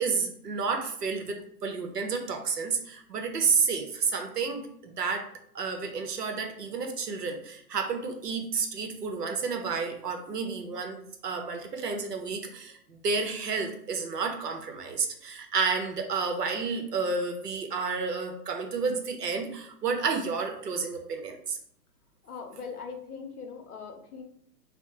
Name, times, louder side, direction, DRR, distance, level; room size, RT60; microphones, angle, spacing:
voice 1, 0.0-5.3 5.5-21.6, right 5 dB, 75° right, 4 dB, 0.7 m, -31 dB
voice 2, 22.2-24.2, left 5 dB, 65° left, 4 dB, 0.8 m, -41 dB
3.5 x 2.1 x 3.0 m, 0.67 s
figure-of-eight pair, 115°, 48 cm